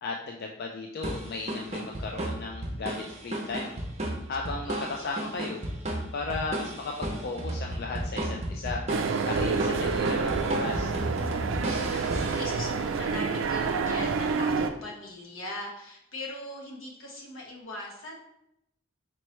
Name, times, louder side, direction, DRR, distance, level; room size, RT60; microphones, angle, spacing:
voice 1, 0.0-3.7 4.3-5.6 6.1-9.0 9.3-10.9, left 3 dB, 50° left, 0 dB, 0.3 m, -35 dB
sound 1, 1.0-13.0, right 1 dB, 30° right, 0.7 m, -34 dB
voice 2, 4.5-5.3 11.9-18.2, left 1 dB, 80° left, -1 dB, 1.1 m, -40 dB
sound 2, 8.9-14.7, right 5 dB, 70° right, 0.3 m, -28 dB
4.3 x 3.0 x 3.1 m, 0.79 s
head